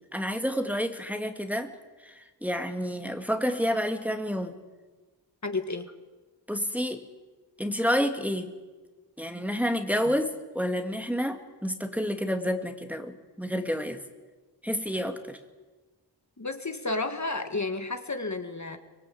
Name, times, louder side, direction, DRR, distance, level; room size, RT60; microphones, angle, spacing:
voice 1, 0.1-1.7 2.0-4.6 6.5-7.0 7.6-8.5 9.2-14.0 14.6-15.4, equal, 5° right, 5 dB, 1.9 m, -29 dB
voice 2, 5.4-5.9 10.1-10.2 16.4-18.8, left 3 dB, 40° left, 6 dB, 1.8 m, -32 dB
24.5 x 22.0 x 8.6 m, 1.3 s
wide cardioid pair, 75°, 42 cm